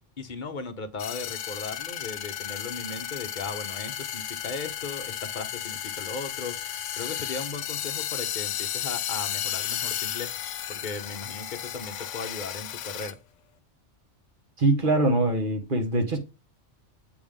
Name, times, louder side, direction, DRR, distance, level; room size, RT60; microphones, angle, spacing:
voice 1, 0.2-10.4 10.7-13.2, left 4 dB, 45° left, 0.9 m, -37 dB
sound 1, 1.0-13.1, left 11 dB, 90° left, 0.9 m, -33 dB
voice 2, 14.6-16.2, right 2 dB, 45° right, 1.7 m, -23 dB
7.9 x 3.5 x 3.4 m
omnidirectional pair, 1.2 m